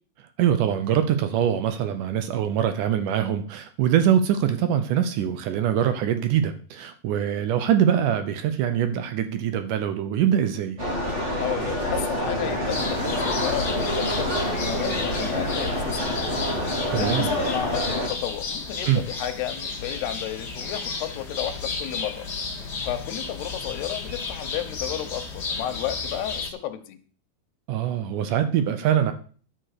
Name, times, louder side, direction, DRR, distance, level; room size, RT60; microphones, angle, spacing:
voice 1, 0.4-10.8 16.9-17.3 18.8-19.0 27.7-29.1, right 9 dB, 75° right, 9 dB, 2.0 m, -23 dB
sound 1, 10.8-18.1, equal, 25° right, 1.5 m, -27 dB
voice 2, 11.4-16.4 16.9-22.3 22.8-27.0, left 11 dB, 90° left, 7 dB, 3.1 m, -32 dB
sound 2, 12.7-26.5, left 4 dB, 35° left, 2.0 m, -33 dB
12.0 x 6.5 x 6.6 m, 0.43 s
omnidirectional pair, 4.5 m